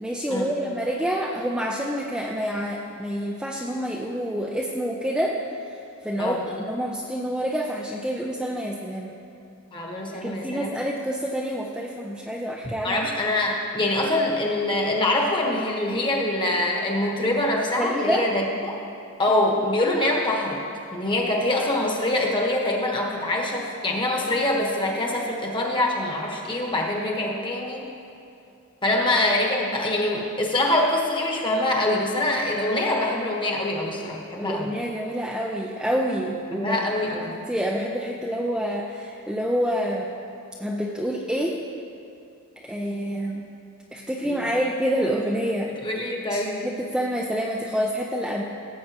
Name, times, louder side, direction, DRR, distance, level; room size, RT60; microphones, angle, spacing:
voice 1, 0.0-5.4 6.0-9.1 10.1-13.0 17.8-18.3 34.4-36.8 37.3-40.1 40.6-41.6 42.6-43.4 43.9-45.7 46.3-48.4, equal, 5° right, -3 dB, 0.4 m, -27 dB
voice 2, 9.7-10.8 12.8-18.8 19.2-20.6 20.9-27.9 28.8-34.7 36.5-37.4 44.2-44.4 45.7-46.6, left 1 dB, 20° left, -1 dB, 1.2 m, -24 dB
17.0 x 7.8 x 2.9 m, 2.6 s
head